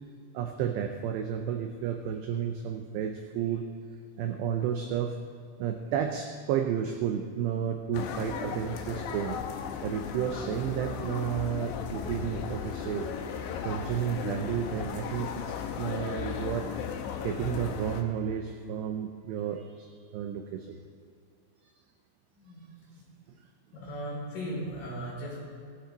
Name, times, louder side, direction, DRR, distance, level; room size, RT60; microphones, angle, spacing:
voice 1, 0.3-3.7 4.2-5.2 5.6-9.4 9.8-13.1 13.6-16.7 17.2-20.7, right 9 dB, 85° right, 5 dB, 2.5 m, -32 dB
sound 1, 7.9-18.0, left 7 dB, 75° left, 3.1 m, -36 dB
voice 2, 23.7-25.4, equal, 45° left, -5 dB, 5.7 m, -37 dB
18.0 x 12.5 x 4.0 m, 2.2 s
omnidirectional pair, 5.7 m